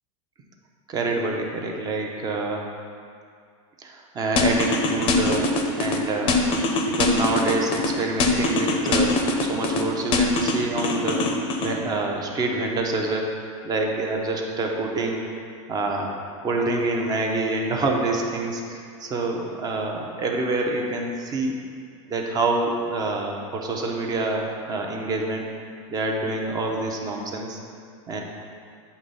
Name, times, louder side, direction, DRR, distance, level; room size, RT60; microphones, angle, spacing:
voice 1, 0.9-2.7 3.8-5.5 5.8-6.5 6.9-11.3 11.6-13.4 13.6-15.3 15.7-16.2 16.4-21.5 22.1-25.4 25.9-27.6 28.1-28.2, right 2 dB, 25° right, 1 dB, 0.7 m, -26 dB
sound 1, 4.4-6.0 6.3-7.9 8.2-9.8 10.1-11.7, left 3 dB, 30° left, 0.6 m, -22 dB
8.4 x 3.1 x 5.4 m, 2.2 s
supercardioid pair, 150°, 17 cm